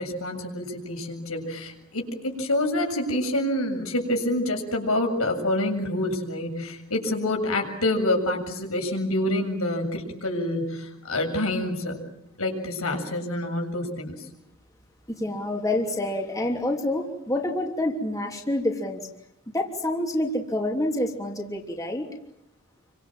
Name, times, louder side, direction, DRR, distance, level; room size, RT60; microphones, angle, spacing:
voice 1, 0.0-12.0 12.4-14.2, left 1 dB, 90° left, 3 dB, 7.5 m, -27 dB
voice 2, 15.1-19.0 19.5-22.1, left 1 dB, 15° left, 1 dB, 3.1 m, -27 dB
28.5 x 25.0 x 7.7 m, 0.80 s
head